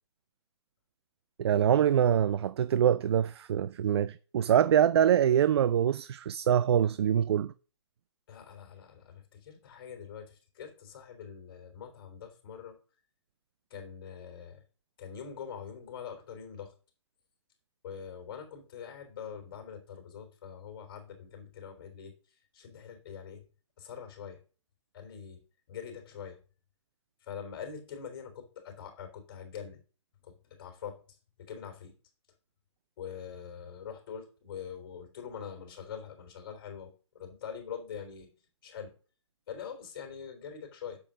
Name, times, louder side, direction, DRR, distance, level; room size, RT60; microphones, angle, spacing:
voice 1, 1.4-7.5, right 9 dB, 60° right, 0.4 m, -24 dB
voice 2, 8.3-12.8 13.7-14.6 15.0-16.7 17.8-23.4 23.8-24.4 24.9-25.4 25.7-26.4 27.2-29.8 30.2-32.0 33.0-38.3 38.6-38.9 39.5-41.0, left 7 dB, 50° left, 3.5 m, -44 dB
7.0 x 5.2 x 6.3 m
hypercardioid pair, 145°, 15 cm